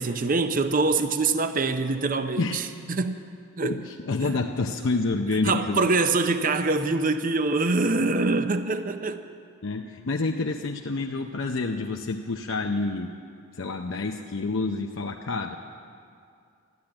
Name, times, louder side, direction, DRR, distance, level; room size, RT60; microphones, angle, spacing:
voice 1, 0.0-3.2 3.6-3.8 4.2-4.4 5.4-9.2, right 3 dB, 40° right, 9 dB, 0.6 m, -24 dB
voice 2, 3.6-5.9 9.6-13.1 13.5-15.6, left 3 dB, 60° left, 2 dB, 0.6 m, -28 dB
13.5 x 12.0 x 8.7 m, 2.4 s
head